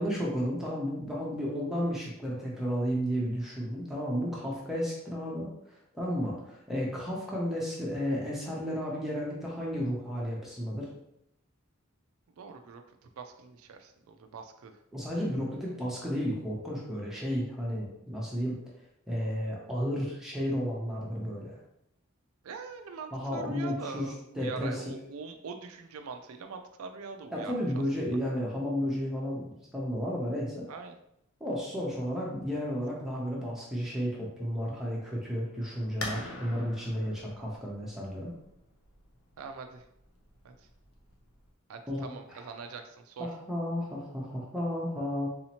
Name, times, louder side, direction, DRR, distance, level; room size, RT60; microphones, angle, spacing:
voice 1, 0.0-10.9 14.9-18.6 19.1-21.6 23.1-24.1 24.4-24.8 27.3-29.4 29.7-30.7 31.4-38.3 41.9-42.5 43.2-45.3, equal, ahead, -5 dB, 0.7 m, -33 dB
voice 2, 12.4-14.8 22.4-27.6 30.7-31.0 39.4-39.8 40.4-40.7 41.7-43.3, right 4 dB, 80° right, 6 dB, 0.4 m, -43 dB
sound 1, 36.0-41.5, left 2 dB, 85° left, 0.7 m, -44 dB
4.0 x 2.8 x 2.9 m, 0.79 s
head